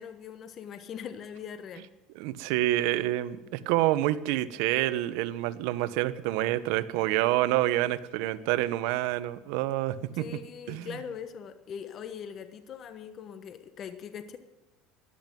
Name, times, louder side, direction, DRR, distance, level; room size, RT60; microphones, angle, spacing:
voice 1, 0.0-1.8 10.1-14.4, left 7 dB, 40° left, 10 dB, 1.3 m, -41 dB
voice 2, 2.2-10.2 10.7-10.9, right 15 dB, 75° right, 14 dB, 1.0 m, -27 dB
14.0 x 11.0 x 9.2 m, 1.1 s
cardioid pair, 135°, 0 cm